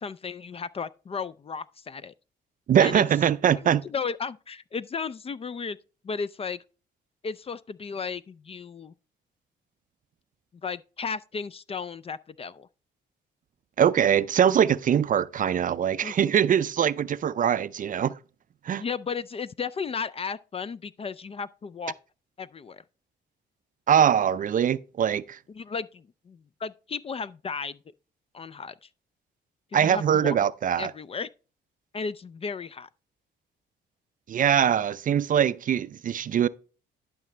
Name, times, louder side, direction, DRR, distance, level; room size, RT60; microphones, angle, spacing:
voice 1, 0.0-2.1 2.8-3.0 3.6-5.8 6.0-6.6 7.2-8.9 10.6-12.7 16.0-16.2 18.8-21.9 22.4-22.8 25.5-27.8 28.3-28.9 29.7-30.4 30.8-31.3 31.9-32.9, left 5 dB, 30° left, 0.4 m, -34 dB
voice 2, 2.7-3.8 13.8-18.1 18.7-18.8 23.9-25.4 29.7-30.9 34.3-36.5, right 9 dB, 45° right, 0.4 m, -22 dB
12.0 x 6.0 x 3.2 m
cardioid pair, 90°, 20 cm